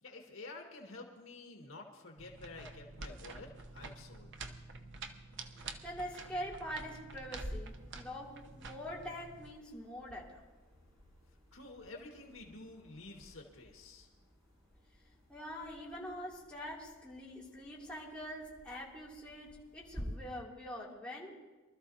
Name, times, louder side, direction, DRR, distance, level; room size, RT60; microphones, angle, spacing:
voice 1, 0.0-4.3 11.5-14.1, left 2 dB, 80° left, 1 dB, 1.8 m, -50 dB
sound 1, 2.2-9.5, right 3 dB, 65° right, 0.9 m, -49 dB
voice 2, 5.8-10.4 15.3-21.3, equal, 5° left, -6 dB, 2.7 m, -44 dB
sound 2, 7.4-20.0, equal, 25° right, 6.1 m, -53 dB
24.5 x 13.0 x 2.8 m, 1.2 s
head